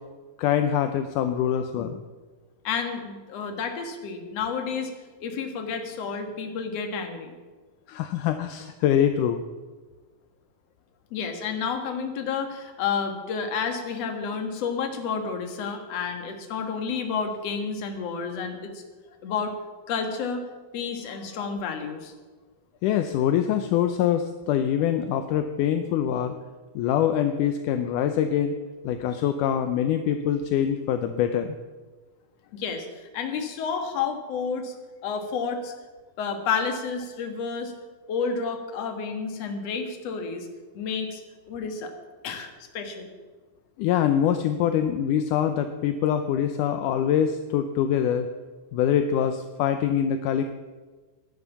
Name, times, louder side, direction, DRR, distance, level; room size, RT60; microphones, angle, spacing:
voice 1, 0.4-2.0 7.9-9.4 22.8-26.4 26.8-28.6 28.8-31.6 43.8-48.3 48.7-50.4, left 9 dB, 75° left, 8 dB, 2.0 m, -24 dB
voice 2, 2.6-4.9 5.2-7.3 11.1-18.8 19.2-19.5 19.9-22.1 32.5-34.7 35.0-35.7 36.2-37.7 38.1-40.5 40.7-41.2 41.5-41.9 42.2-43.1, left 5 dB, 50° left, 5 dB, 2.4 m, -30 dB
15.0 x 11.0 x 7.3 m, 1.3 s
omnidirectional pair, 4.2 m